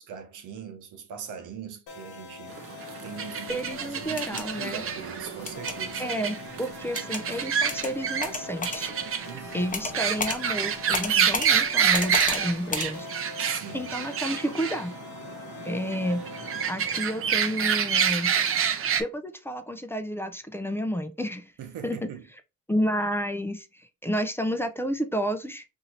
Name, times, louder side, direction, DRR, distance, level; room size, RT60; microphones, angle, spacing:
voice 1, 0.1-2.6 3.0-6.0 9.3-9.7 13.4-13.9 21.6-22.2, right 8 dB, 85° right, 0.9 m, -41 dB
sound 1, 1.9-16.7, left 5 dB, 75° left, 1.1 m, -43 dB
sound 2, 2.5-19.0, right 7 dB, 45° right, 0.6 m, -28 dB
voice 2, 3.5-4.8 6.0-8.9 9.5-13.1 13.7-14.9 15.6-16.2 16.7-18.3 19.0-21.5 21.8-22.1 22.7-25.6, equal, 10° left, 0.5 m, -30 dB
sound 3, 4.0-4.4 5.5-5.7 6.9-7.2 7.7-7.9 8.2-8.8 9.7-9.9 10.2-10.4 10.9-11.5 11.9-12.4 12.7-12.9, left 4 dB, 25° left, 0.8 m, -31 dB
2.7 x 2.6 x 4.3 m
cardioid pair, 90°, 30 cm